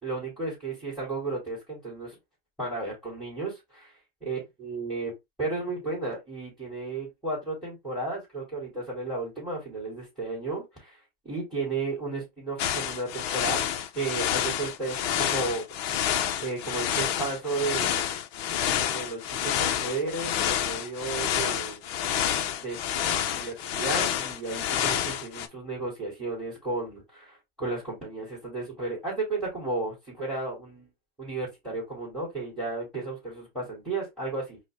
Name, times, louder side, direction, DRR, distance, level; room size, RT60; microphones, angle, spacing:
voice 1, 0.0-2.2 2.6-3.9 4.3-5.1 5.4-11.0 11.2-13.6 13.9-15.7 16.4-18.1 18.9-21.8 22.6-22.8 23.3-30.9 31.2-34.7, right 3 dB, ahead, 2.5 m, -33 dB
sound 1, 12.6-25.5, left 10 dB, 30° left, 0.5 m, -28 dB
4.8 x 2.1 x 3.4 m
hypercardioid pair, 135°, 30 cm